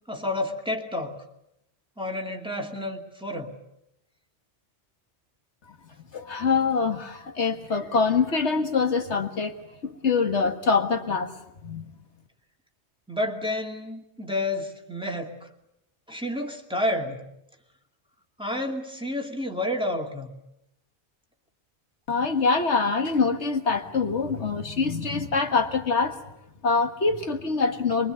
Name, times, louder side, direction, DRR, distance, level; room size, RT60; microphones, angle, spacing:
voice 1, 0.1-1.2 2.0-3.5 13.1-15.5 16.1-17.2 18.4-20.3, left 1 dB, 5° right, 2 dB, 2.5 m, -30 dB
voice 2, 6.1-9.5 9.8-11.3 11.6-11.9 22.1-26.2 26.6-28.1, left 4 dB, 75° left, 6 dB, 1.9 m, -24 dB
23.5 x 23.0 x 8.2 m, 0.83 s
omnidirectional pair, 1.2 m